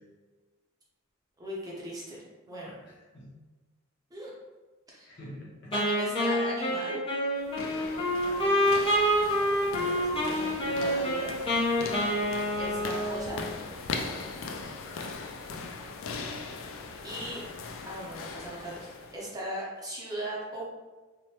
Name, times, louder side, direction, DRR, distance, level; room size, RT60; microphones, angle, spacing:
voice 1, 1.4-2.8 4.1-4.3 4.9-5.1 5.7-7.0 9.8-11.3 12.6-13.4 17.0-17.4 17.9-20.7, right 1 dB, 20° right, -5 dB, 0.7 m, -38 dB
voice 2, 2.6-3.3 5.1-5.7 8.2-8.5 14.8-15.1, left 1 dB, 60° left, -4 dB, 0.8 m, -47 dB
Wind instrument woodwind instrument, 5.7-13.6, equal, 25° left, 0.8 m, -27 dB
sound 1, 7.4-19.3, left 4 dB, 80° left, 0.3 m, -39 dB
3.2 x 2.1 x 2.9 m, 1.3 s
head